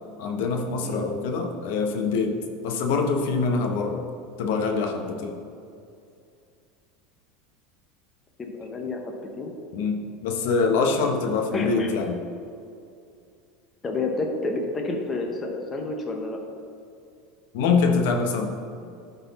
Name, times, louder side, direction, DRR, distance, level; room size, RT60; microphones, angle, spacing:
voice 1, 0.2-4.0 4.4-5.4 9.7-12.2 17.5-18.5, left 4 dB, 70° left, 4 dB, 0.8 m, -24 dB
voice 2, 8.4-9.5 11.5-11.9 13.8-16.4, left 3 dB, 15° left, 2 dB, 0.7 m, -30 dB
12.0 x 4.1 x 4.0 m, 2.5 s
supercardioid pair, 160°, 0 cm